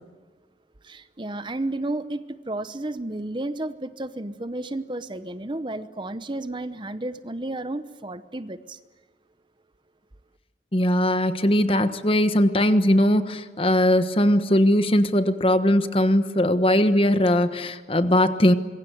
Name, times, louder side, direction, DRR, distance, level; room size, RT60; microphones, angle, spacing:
voice 1, 0.8-8.8, right 2 dB, 25° right, 12 dB, 0.9 m, -32 dB
voice 2, 10.7-18.5, left 1 dB, 30° left, 11 dB, 1.3 m, -20 dB
26.0 x 22.5 x 9.3 m, 1.4 s
head